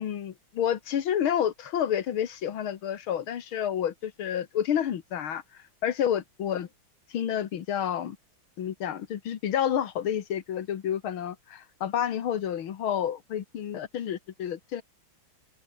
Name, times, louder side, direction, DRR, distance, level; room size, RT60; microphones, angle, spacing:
voice 1, 0.0-5.4 5.8-6.7 7.1-8.2 8.6-14.8, left 9 dB, 80° left, 2.3 m, -29 dB
open air
omnidirectional pair, 2.2 m